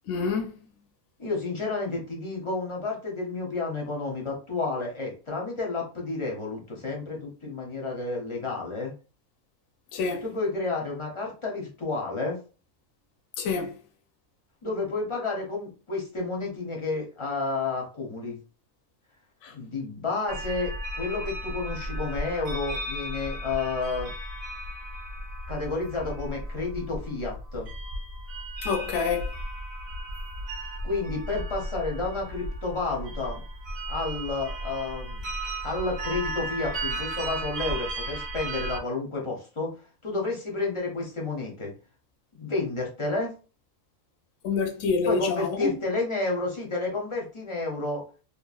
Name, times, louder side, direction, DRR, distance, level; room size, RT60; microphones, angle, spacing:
voice 1, 0.1-0.6 9.9-10.2 13.4-13.7 19.4-19.5 28.6-29.3 44.4-45.8, left 5 dB, 70° left, 0.8 m, -27 dB
voice 2, 1.2-8.9 10.2-12.4 14.6-18.4 19.5-24.1 25.5-27.7 30.8-33.4 33.9-35.2 35.6-39.7 40.0-41.7 42.3-43.3 45.0-48.0, left 3 dB, 35° left, 0.5 m, -31 dB
sound 1, 20.3-38.8, right 1 dB, 65° right, 0.4 m, -35 dB
3.0 x 2.3 x 2.3 m
omnidirectional pair, 1.4 m